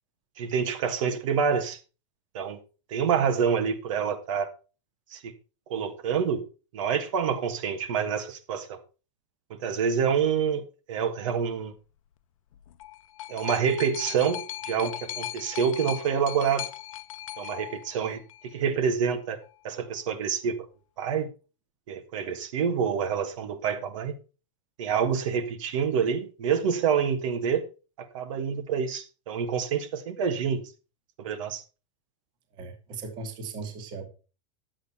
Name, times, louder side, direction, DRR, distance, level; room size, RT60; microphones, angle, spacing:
voice 1, 0.4-1.8 2.3-2.6 2.9-4.5 5.1-5.3 5.7-6.4 6.7-8.8 9.5-11.7 13.3-16.7 17.4-19.4 19.6-20.5 21.0-21.3 21.9-24.2 24.8-27.6 28.0-30.7 31.2-31.6, right 7 dB, 70° right, 1.5 m, -27 dB
sound 1, 12.5-18.5 19.4-19.5, left 14 dB, 90° left, 0.8 m, -38 dB
voice 2, 32.5-34.1, right 4 dB, 25° right, 1.6 m, -38 dB
10.5 x 7.9 x 4.2 m
supercardioid pair, 175°, 17 cm